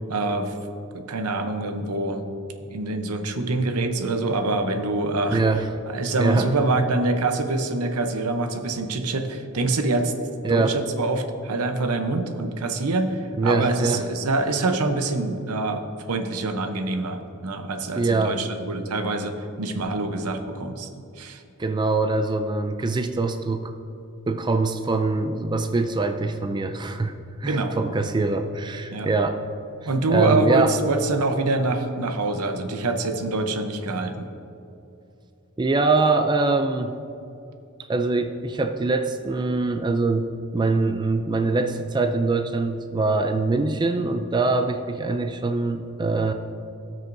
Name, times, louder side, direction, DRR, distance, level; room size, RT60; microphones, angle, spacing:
voice 1, 0.1-0.5 0.9-2.3 2.7-5.4 5.9-10.1 10.5-20.9 21.2-21.4 27.5-27.8 28.9-29.1 29.9-34.3, right 2 dB, 80° right, 6 dB, 0.8 m, -25 dB
voice 2, 5.3-5.7 6.2-6.5 10.4-10.8 13.4-14.0 18.0-18.4 21.6-23.7 24.3-27.1 27.4-29.4 30.1-30.7 35.6-36.9 37.9-46.3, right 3 dB, 20° right, 6 dB, 0.4 m, -23 dB
17.5 x 6.3 x 2.6 m, 2.8 s
head